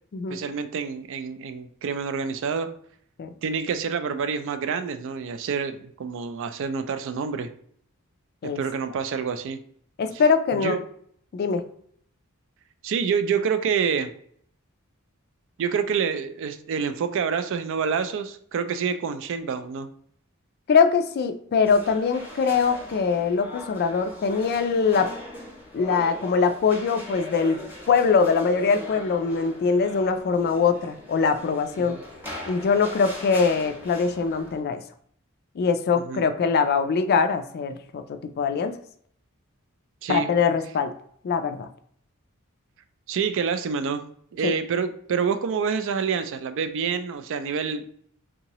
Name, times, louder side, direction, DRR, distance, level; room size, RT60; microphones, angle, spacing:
voice 1, 0.3-2.7 3.4-7.5 8.6-9.6 10.1-10.2 10.5-10.8 12.8-14.1 15.6-19.9 31.8-32.0 35.9-36.2 40.0-40.3 43.1-44.0 44.3-47.9, right 6 dB, 60° right, 10 dB, 0.3 m, -27 dB
voice 2, 10.0-10.8 11.3-11.6 20.7-25.1 25.7-27.6 27.9-32.0 32.5-34.8 35.6-38.8 40.1-40.9 41.2-41.7 44.4-44.5, left 5 dB, 50° left, 8 dB, 0.3 m, -22 dB
sound 1, 21.6-34.6, left 1 dB, 10° right, 0.9 m, -40 dB
3.6 x 2.9 x 2.9 m, 0.64 s
head